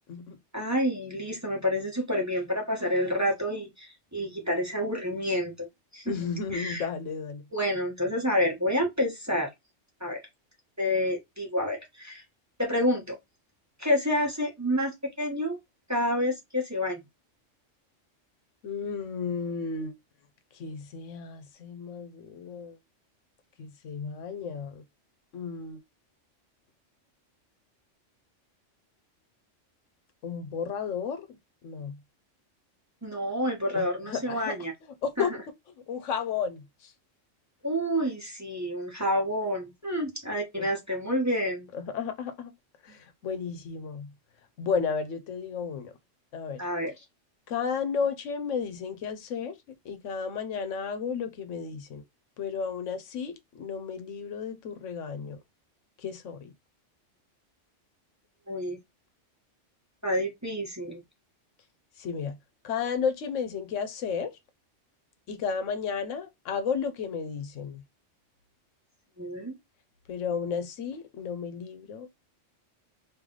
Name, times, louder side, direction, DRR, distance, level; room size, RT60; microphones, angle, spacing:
voice 1, 0.5-5.7 5.9-6.9 7.5-9.5 10.0-10.2 10.8-12.2 12.6-13.2 13.8-15.6 15.9-17.0 33.0-34.7 35.2-35.3 37.6-41.7 46.6-47.0 58.5-58.8 60.0-61.0 69.2-69.6, equal, 15° right, 1.0 m, -29 dB
voice 2, 6.1-7.4 18.6-19.9 20.6-22.8 23.6-24.8 25.3-25.8 30.2-31.3 31.6-32.0 33.7-34.5 35.0-35.3 35.9-36.9 40.6-40.7 41.7-42.5 42.8-44.1 44.6-45.9 46.3-46.6 47.5-49.5 49.8-52.0 52.4-55.4 56.0-56.5 62.0-62.4 62.6-64.3 65.3-67.8 70.1-72.2, left 6 dB, 80° left, 1.0 m, -33 dB
3.2 x 2.7 x 3.7 m
omnidirectional pair, 1.3 m